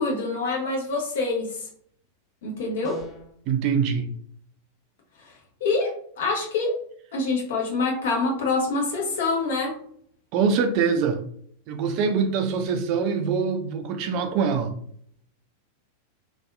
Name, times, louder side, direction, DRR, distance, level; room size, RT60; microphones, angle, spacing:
voice 1, 0.0-1.6 2.4-3.0 5.6-6.7 7.1-9.7, left 3 dB, 60° left, 0.8 m, -25 dB
sound 1, 2.8-3.4, left 1 dB, 30° left, 0.6 m, -41 dB
voice 2, 3.5-4.1 10.3-11.2 11.7-14.7, right 6 dB, 40° right, 0.4 m, -24 dB
2.7 x 2.3 x 2.2 m
figure-of-eight pair, 90°, 0 cm